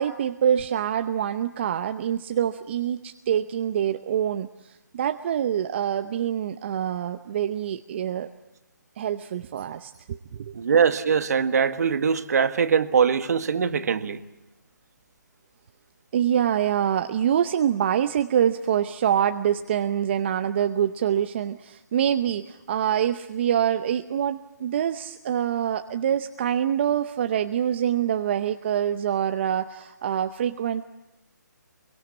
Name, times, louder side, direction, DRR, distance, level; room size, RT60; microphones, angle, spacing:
voice 1, 0.0-8.3 9.0-10.5 16.1-30.8, right 9 dB, 35° right, 0.8 m, -25 dB
voice 2, 10.5-14.2, right 6 dB, 55° right, 1.6 m, -22 dB
24.5 x 23.5 x 8.6 m
hypercardioid pair, 155°, 10 cm